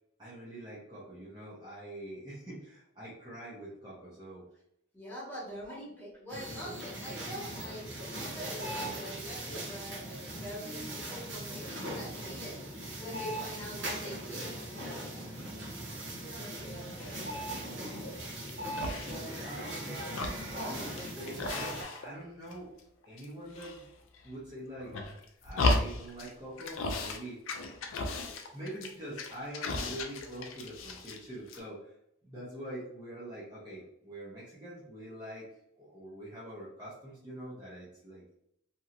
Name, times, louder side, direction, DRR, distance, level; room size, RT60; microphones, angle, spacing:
voice 1, 0.2-4.4 5.6-5.8 17.5-17.9 18.9-20.0 20.6-22.7 23.0-23.9 24.2-25.0 25.4-27.7 28.5-31.9 32.2-35.5 35.8-38.4, right 1 dB, 20° right, -8 dB, 0.8 m, -44 dB
voice 2, 4.9-12.6 13.0-14.5, equal, 10° left, -8 dB, 1.2 m, -44 dB
sound 1, 6.3-21.8, right 1 dB, 65° right, 0.8 m, -40 dB
sound 2, 17.0-17.4 17.9-18.5 18.8-19.8 20.0-22.2 22.5-23.2 23.5-24.3 24.8-26.3 26.6-27.2 27.5-31.2 31.5-31.6, left 2 dB, 90° left, 0.4 m, -35 dB
2.8 x 2.7 x 2.5 m, 0.74 s
head